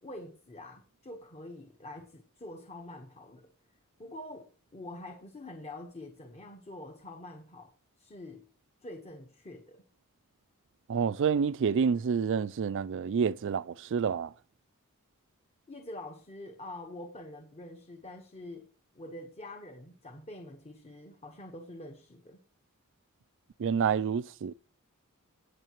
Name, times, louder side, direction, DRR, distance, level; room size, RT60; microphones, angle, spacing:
voice 1, 0.0-3.5 4.0-8.4 8.8-9.8 15.7-18.7 18.9-22.4, left 1 dB, 30° left, 1.1 m, -46 dB
voice 2, 10.9-14.3 23.6-24.5, right 6 dB, 60° right, 0.4 m, -28 dB
18.0 x 6.6 x 3.0 m
head